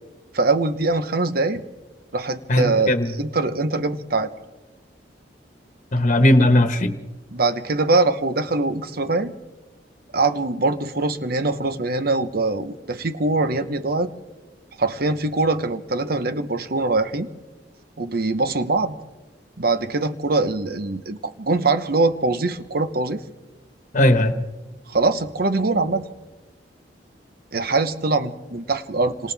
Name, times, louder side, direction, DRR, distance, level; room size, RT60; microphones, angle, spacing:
voice 1, 0.3-1.6 2.1-2.9 3.2-4.3 7.3-9.3 10.1-14.1 14.8-17.3 18.0-19.0 19.6-23.2 24.9-26.1 27.5-29.3, right 3 dB, 60° right, 10 dB, 1.1 m, -22 dB
voice 2, 2.5-3.1 5.9-6.9 23.9-24.4, left 1 dB, 45° left, 7 dB, 1.3 m, -17 dB
28.5 x 26.0 x 3.5 m, 1.2 s
head